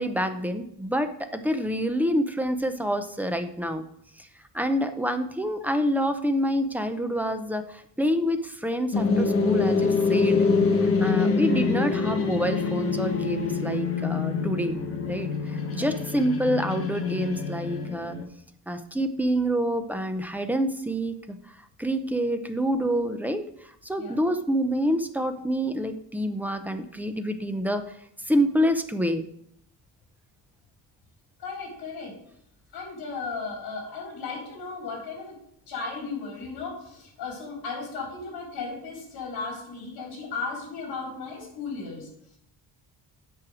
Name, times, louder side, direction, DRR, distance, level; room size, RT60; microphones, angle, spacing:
voice 1, 0.0-3.9 4.2-4.3 4.5-10.5 10.8-14.8 15.1-18.2 18.7-21.4 21.8-23.4 23.8-27.8 28.3-29.3, equal, 5° right, 8 dB, 0.5 m, -27 dB
sound 1, 8.9-18.2, left 4 dB, 35° left, 1.3 m, -25 dB
voice 2, 31.4-32.1 32.7-35.4 35.7-42.1, left 4 dB, 60° left, -1 dB, 3.9 m, -35 dB
8.7 x 6.3 x 4.9 m, 0.71 s
cardioid pair, 160°, 41 cm